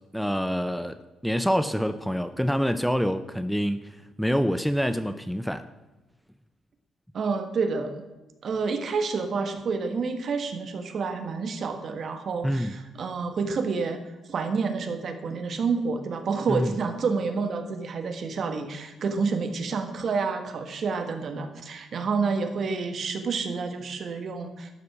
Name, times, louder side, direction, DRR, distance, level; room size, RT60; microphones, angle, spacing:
voice 1, 0.1-5.6 12.4-12.7 16.5-16.7, equal, ahead, 10 dB, 0.5 m, -26 dB
voice 2, 7.1-8.0 8.4-24.7, right 4 dB, 55° right, 7 dB, 1.5 m, -29 dB
12.5 x 6.7 x 5.9 m, 1.1 s
cardioid pair, 90°, 0 cm